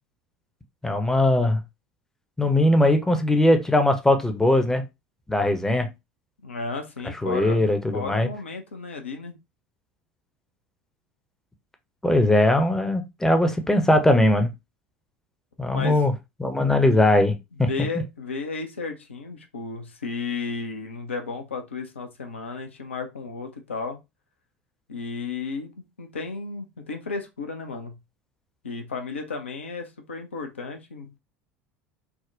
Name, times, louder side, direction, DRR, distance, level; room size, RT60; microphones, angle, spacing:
voice 1, 0.8-1.6 2.4-4.8 5.3-5.9 7.2-8.3 12.0-14.5 15.6-16.1 16.4-17.7, left 1 dB, 5° left, 0.6 m, -20 dB
voice 2, 6.4-7.6 7.9-9.4 15.7-16.1 16.6-16.7 17.6-24.0 24.9-28.0 28.6-31.2, left 4 dB, 75° left, 0.5 m, -33 dB
3.4 x 2.1 x 2.6 m
figure-of-eight pair, 70°, 7 cm